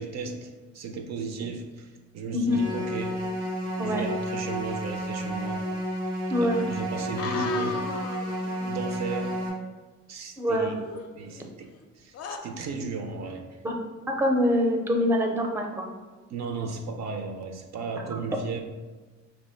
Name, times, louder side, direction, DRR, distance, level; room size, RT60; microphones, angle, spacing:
voice 1, 0.0-3.2 3.8-5.6 6.4-7.8 8.4-9.4 10.1-10.8 11.1-12.1 12.4-13.6 16.3-18.6, right 4 dB, 65° right, 5 dB, 0.5 m, -35 dB
sound 1, 2.5-9.5, equal, 85° right, 1.0 m, -31 dB
voice 2, 6.3-6.7 10.4-10.7 13.6-13.7 14.1-15.9 18.1-18.2, left 1 dB, 10° right, 2 dB, 0.4 m, -25 dB
sound 2, 7.2-8.8 10.7-11.8 12.1-12.4, left 6 dB, 55° left, 0.4 m, -37 dB
3.0 x 2.1 x 4.1 m, 1.3 s
cardioid pair, 90°, 30 cm